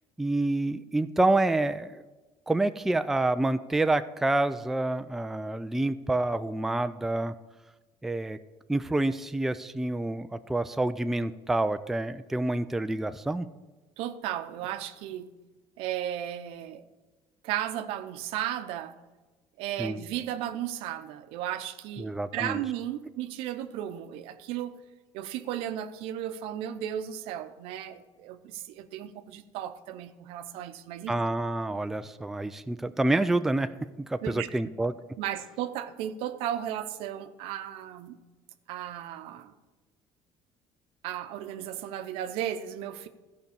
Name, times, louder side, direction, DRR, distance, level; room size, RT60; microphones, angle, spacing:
voice 1, 0.2-2.0 2.5-7.3 8.0-8.4 8.7-13.5 19.8-20.0 22.0-22.6 31.1-33.7 34.1-34.9, right 2 dB, 5° right, 0.3 m, -28 dB
voice 2, 14.0-15.3 15.8-16.8 17.4-19.0 19.6-24.8 25.1-31.2 34.2-34.6 35.2-38.2 38.7-39.5 41.0-43.1, right 11 dB, 80° right, 0.7 m, -35 dB
14.0 x 5.3 x 7.1 m
cardioid pair, 145°, 10 cm